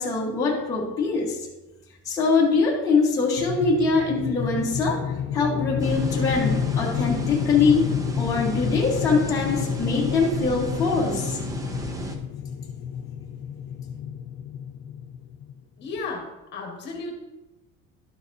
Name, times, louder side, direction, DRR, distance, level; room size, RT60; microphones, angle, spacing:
voice 1, 0.0-1.5 2.0-5.0 5.3-7.9 8.2-11.4, left 4 dB, 10° left, -6 dB, 1.2 m, -23 dB
sound 1, 3.4-15.6, left 8 dB, 60° left, 0.7 m, -30 dB
sound 2, 5.8-12.2, right 2 dB, 10° right, 0.4 m, -34 dB
voice 2, 15.8-17.1, left 3 dB, 35° left, 0 dB, 1.4 m, -34 dB
12.0 x 6.8 x 2.6 m, 1.0 s
cardioid pair, 175°, 29 cm